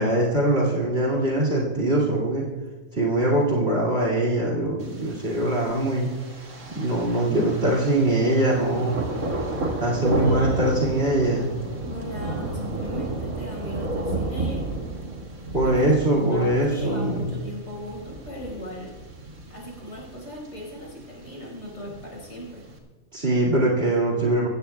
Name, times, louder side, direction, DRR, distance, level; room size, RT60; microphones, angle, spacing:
voice 1, 0.0-2.5 2.9-6.1 6.7-9.0 9.8-11.5 15.5-17.4 23.1-24.5, right 1 dB, 45° right, -4 dB, 2.6 m, -22 dB
Thunder, 4.8-22.8, right 2 dB, 90° right, 2.6 m, -33 dB
voice 2, 9.9-10.8 11.8-14.7 15.6-18.9 19.5-22.7, equal, 60° left, -2 dB, 5.3 m, -37 dB
23.5 x 15.5 x 2.3 m, 1.3 s
omnidirectional pair, 1.5 m